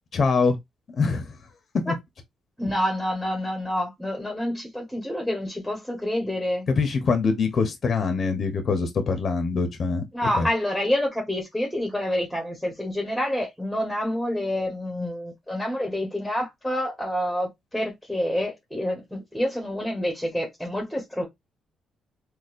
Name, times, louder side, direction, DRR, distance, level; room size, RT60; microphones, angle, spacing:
voice 1, 0.1-0.6 1.0-1.3 1.9-2.0 6.7-10.0 10.4-10.5, left 4 dB, 50° left, 0.8 m, -23 dB
voice 2, 2.6-6.7 10.1-21.3, left 1 dB, ahead, 1.3 m, -28 dB
4.2 x 2.3 x 2.5 m
cardioid pair, 90°, 0 cm